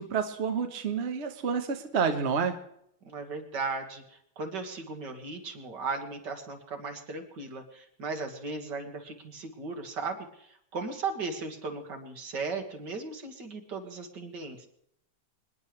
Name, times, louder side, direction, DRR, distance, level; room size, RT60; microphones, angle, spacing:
voice 1, 0.0-2.6, right 6 dB, 45° right, 6 dB, 1.2 m, -29 dB
voice 2, 3.0-14.7, right 4 dB, 75° right, 4 dB, 2.3 m, -37 dB
27.0 x 10.5 x 3.2 m, 0.73 s
omnidirectional pair, 1.9 m